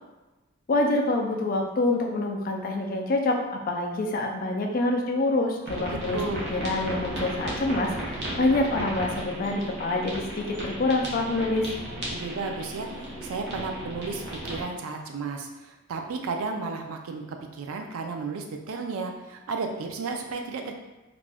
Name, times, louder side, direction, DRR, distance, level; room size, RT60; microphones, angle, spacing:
voice 1, 0.7-6.2 6.5-11.7, left 2 dB, 45° left, 2 dB, 0.3 m, -26 dB
sound 1, 5.7-14.6, right 1 dB, 55° right, 0.7 m, -35 dB
voice 2, 5.8-6.4 12.1-20.7, right 4 dB, 85° right, 4 dB, 0.4 m, -33 dB
2.4 x 2.2 x 3.3 m, 1.1 s
head